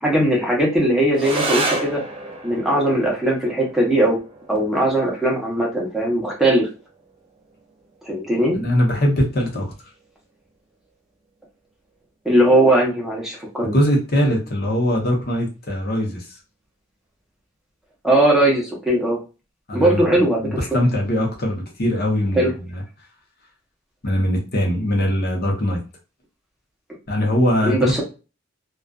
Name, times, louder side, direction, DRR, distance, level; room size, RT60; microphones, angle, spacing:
voice 1, 0.0-2.0 2.4-4.2 4.5-6.7 8.0-8.6 12.2-13.7 18.0-19.2 19.7-20.6 22.4-22.5 27.6-28.0, right 1 dB, ahead, -3 dB, 0.8 m, -19 dB
sound 1, 1.1-10.1, right 2 dB, 25° right, 0.4 m, -32 dB
voice 2, 8.6-9.6 13.6-16.2 19.7-20.1 20.4-22.8 24.0-25.8 27.1-28.0, equal, 50° left, 0 dB, 0.8 m, -21 dB
2.4 x 2.3 x 2.2 m, 0.31 s
head